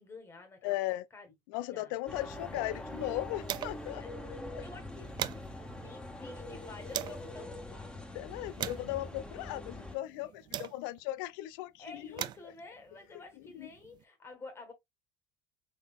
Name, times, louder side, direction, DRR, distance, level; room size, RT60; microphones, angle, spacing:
voice 1, 0.0-0.8 1.1-1.3 1.6-2.0 3.9-8.6 11.8-14.7, left 3 dB, 25° left, 1.5 m, -51 dB
voice 2, 0.6-1.0 1.5-4.0 4.5-4.6 8.1-12.2 13.5-13.7, left 16 dB, 85° left, 0.4 m, -37 dB
sound 1, 2.1-9.9, left 1 dB, 10° left, 1.2 m, -43 dB
sound 2, 2.2-4.0 4.3-4.4 4.7-7.3 7.9-11.1 11.8-14.0, right 12 dB, 45° right, 0.4 m, -43 dB
3.8 x 3.5 x 2.3 m
supercardioid pair, 115°, 11 cm